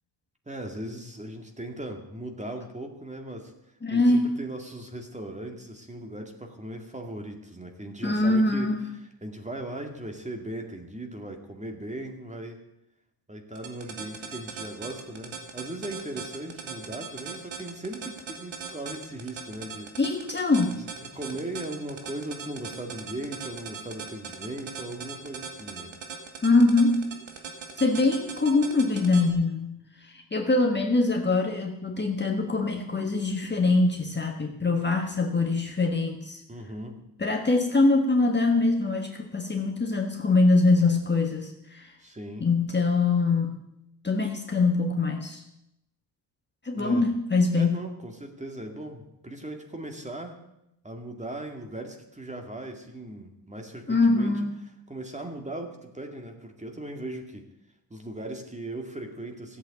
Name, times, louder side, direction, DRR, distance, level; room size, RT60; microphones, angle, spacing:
voice 1, 0.5-3.5 3.9-8.7 9.2-12.6 13.3-19.9 20.8-26.0 36.5-37.0 42.0-42.5 46.7-47.1 47.5-50.4 50.8-54.4 54.9-57.5 57.9-59.6, right 1 dB, 15° right, 4 dB, 2.2 m, -38 dB
voice 2, 3.8-4.4 8.0-8.8 20.0-20.8 26.4-27.1 27.7-36.4 37.2-41.9 42.4-43.6 44.0-45.4 46.6-47.8 53.9-54.5, left 3 dB, 25° left, 2 dB, 1.5 m, -23 dB
sound 1, 13.6-29.3, right 7 dB, 85° right, 2.4 m, -38 dB
15.0 x 8.3 x 8.3 m, 0.88 s
cardioid pair, 100°, 45 cm